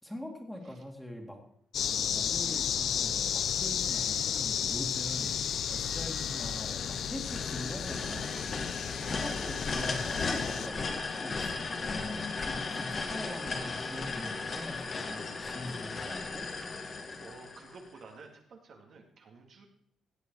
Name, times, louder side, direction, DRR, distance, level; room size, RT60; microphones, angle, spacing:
voice 1, 0.0-1.4 1.9-8.7 9.0-11.6 11.9-16.5, left 1 dB, 5° left, 3 dB, 2.4 m, -43 dB
sound 1, 1.7-10.7, left 8 dB, 65° left, 0.6 m, -33 dB
sound 2, 5.9-18.0, left 4 dB, 40° left, 1.9 m, -36 dB
voice 2, 16.8-19.7, right 4 dB, 60° right, 2 dB, 2.4 m, -52 dB
16.0 x 8.2 x 4.7 m, 0.70 s
cardioid pair, 90°, 0 cm